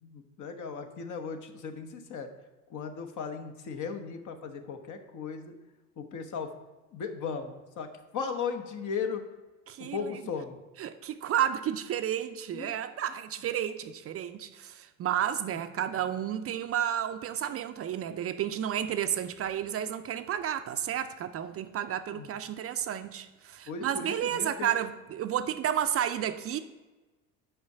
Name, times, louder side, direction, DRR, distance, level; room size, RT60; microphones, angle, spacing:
voice 1, 0.0-2.3 2.7-5.5 6.0-6.5 6.9-7.9 8.1-9.2 9.9-10.6 12.5-12.7 22.1-22.3 23.7-24.7, left 5 dB, 50° left, 1.1 m, -36 dB
voice 2, 9.7-10.2 10.8-26.6, right 10 dB, 40° right, 0.5 m, -31 dB
5.7 x 4.9 x 6.5 m
supercardioid pair, 80°, 38 cm